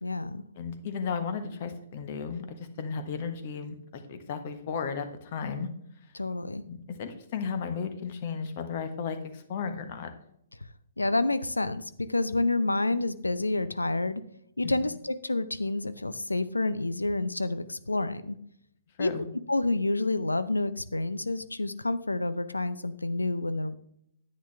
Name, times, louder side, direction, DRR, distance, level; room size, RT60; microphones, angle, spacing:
voice 1, 0.0-0.4 6.1-6.6 11.0-14.2 14.6-18.4 19.0-23.8, left 2 dB, 80° left, 13 dB, 0.6 m, -29 dB
voice 2, 0.6-5.7 6.6-10.1 14.6-14.7 19.0-19.2, left 6 dB, 45° left, 8 dB, 1.4 m, -34 dB
10.0 x 8.9 x 3.5 m, 0.73 s
figure-of-eight pair, 120°, 0 cm